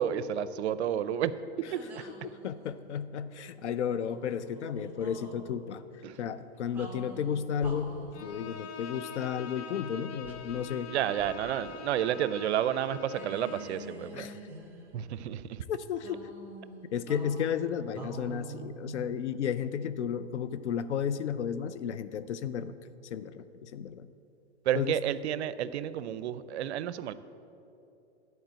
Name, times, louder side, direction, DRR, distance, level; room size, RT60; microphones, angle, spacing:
voice 1, 0.0-1.3 1.7-1.8 6.0-6.2 10.9-14.3 14.9-15.6 24.7-27.1, right 10 dB, 75° right, 15 dB, 0.5 m, -31 dB
sound 1, 1.7-3.0 3.9-5.4 6.7-8.3 10.2-11.7 12.0-12.1 13.1-15.2 16.0-19.7, right 2 dB, 5° right, 1.5 m, -46 dB
voice 2, 2.0-5.8 6.2-10.9 14.1-14.4 15.7-16.2 16.9-22.7 23.1-24.1 24.7-25.0, left 8 dB, 90° left, 13 dB, 0.6 m, -33 dB
Bowed string instrument, 8.1-13.8, left 6 dB, 35° left, 0.6 m, -44 dB
10.5 x 4.6 x 7.5 m, 2.8 s
hypercardioid pair, 125°, 33 cm